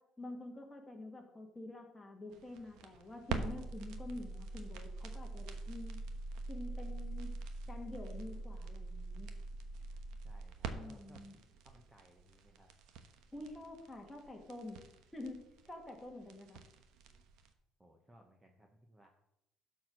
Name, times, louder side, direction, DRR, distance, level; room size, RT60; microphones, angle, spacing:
voice 1, 0.2-6.0 6.5-7.3 7.7-9.3 10.7-11.4 13.3-14.8 15.1-15.4 15.7-16.6, left 2 dB, 10° left, 1 dB, 1.7 m, -47 dB
sound 1, 2.3-17.5, right 3 dB, 75° right, 1.0 m, -44 dB
voice 2, 10.2-12.7 17.8-19.1, equal, 10° right, 3 dB, 0.8 m, -62 dB
12.0 x 4.6 x 6.3 m, 0.83 s
cardioid pair, 155°, 0 cm